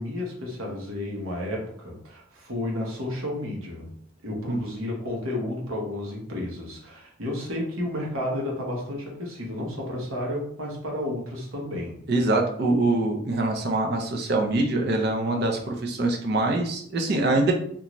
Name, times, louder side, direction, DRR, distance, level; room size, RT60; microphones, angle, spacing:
voice 1, 0.0-3.9 4.2-12.0, left 1 dB, 90° right, -2 dB, 0.9 m, -32 dB
voice 2, 4.5-4.8 12.1-17.5, right 2 dB, 55° right, 2 dB, 0.5 m, -24 dB
2.5 x 2.3 x 3.0 m, 0.63 s
head